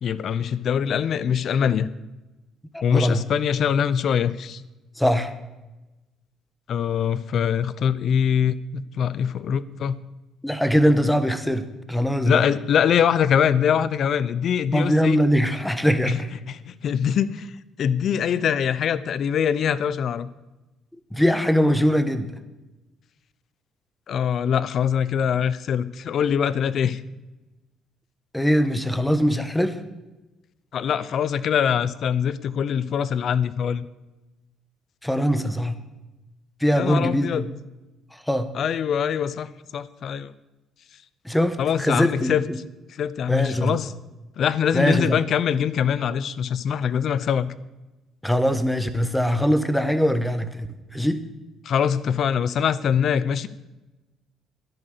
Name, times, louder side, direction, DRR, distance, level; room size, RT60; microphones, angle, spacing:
voice 1, 0.0-1.9 2.8-4.6 6.7-10.0 12.2-15.2 16.1-16.2 16.5-17.5 17.8-20.3 24.1-27.0 30.7-33.9 36.7-37.5 38.5-40.3 41.6-42.4 43.0-43.9 44.4-47.5 51.6-53.5, left 8 dB, 60° left, 17 dB, 0.7 m, -23 dB
voice 2, 2.7-3.2 5.0-5.3 10.4-12.4 14.7-16.3 21.1-22.3 28.3-29.8 35.0-35.8 36.6-37.5 38.1-38.5 41.2-42.6 43.3-43.7 44.7-45.2 48.2-51.3, equal, 5° left, 10 dB, 1.4 m, -22 dB
13.0 x 11.0 x 6.8 m, 1.1 s
cardioid pair, 85°, 0 cm